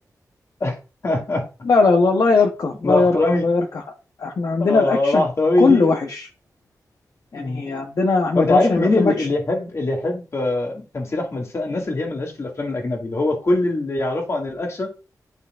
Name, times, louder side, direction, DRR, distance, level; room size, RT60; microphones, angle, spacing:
voice 1, 1.0-1.4 2.8-3.5 4.6-6.0 7.3-7.7 8.3-14.9, left 2 dB, 45° left, 2.2 m, -22 dB
voice 2, 1.6-3.2 3.4-3.6 4.2-5.3 5.6-6.3 7.3-9.3, left 4 dB, 65° left, 1.0 m, -19 dB
10.0 x 5.3 x 2.5 m
wide cardioid pair, 130°, 7 cm